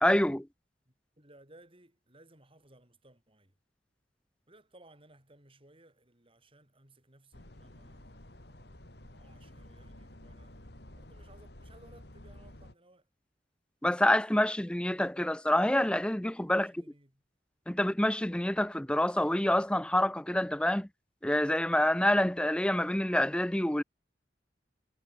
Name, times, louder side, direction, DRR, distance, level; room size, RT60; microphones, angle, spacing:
voice 1, 0.0-0.5 13.8-16.7 17.7-20.9 21.2-23.8, left 1 dB, 5° left, 0.6 m, -27 dB
voice 2, 0.9-3.6 4.5-13.1 16.5-17.2, right 1 dB, 30° right, 6.1 m, -61 dB
sound 1, 7.3-12.7, left 1 dB, 65° left, 3.5 m, -51 dB
head